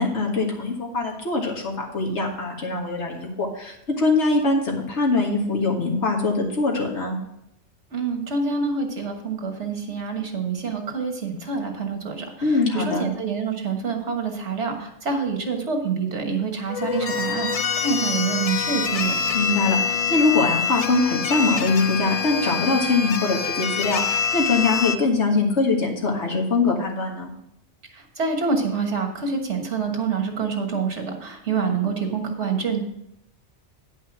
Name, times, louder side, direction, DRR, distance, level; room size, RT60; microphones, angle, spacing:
voice 1, 0.0-7.2 12.4-13.0 19.3-27.3, left 3 dB, 75° left, 0 dB, 2.0 m, -23 dB
voice 2, 7.9-19.2 27.9-32.8, right 5 dB, 75° right, 3 dB, 1.7 m, -26 dB
sound 1, 16.7-25.0, left 6 dB, 50° left, 0.4 m, -25 dB
9.5 x 5.6 x 5.9 m, 0.79 s
omnidirectional pair, 1.2 m